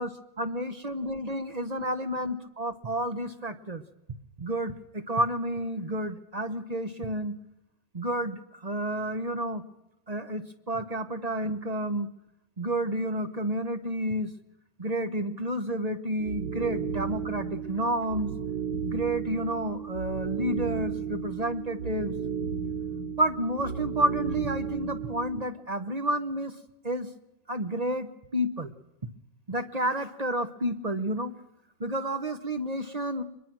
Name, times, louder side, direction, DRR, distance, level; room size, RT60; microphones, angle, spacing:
voice 1, 0.0-3.8 4.4-7.3 7.9-9.6 10.1-12.1 12.6-14.3 14.8-18.3 18.8-22.1 23.2-26.5 26.8-27.1 27.5-28.1 28.3-28.7 29.5-31.3 31.8-33.2, right 1 dB, 30° right, 10 dB, 0.9 m, -30 dB
sound 1, 16.2-25.4, right 7 dB, 70° right, 2.8 m, -34 dB
24.0 x 21.5 x 6.2 m, 0.87 s
omnidirectional pair, 1.9 m